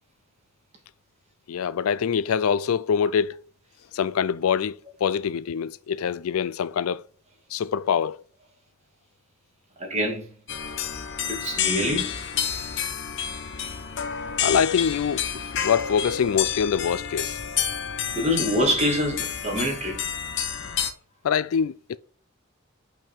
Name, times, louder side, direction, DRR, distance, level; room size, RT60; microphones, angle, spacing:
voice 1, 1.5-3.4 3.9-7.1 7.5-8.2 14.4-17.4 21.2-22.0, left 7 dB, 85° left, 0.4 m, -24 dB
voice 2, 9.8-10.3 11.3-12.2 18.1-20.0, equal, 30° right, 2.3 m, -25 dB
sound 1, 10.5-20.9, left 8 dB, 60° left, 0.9 m, -29 dB
5.5 x 5.4 x 4.4 m
head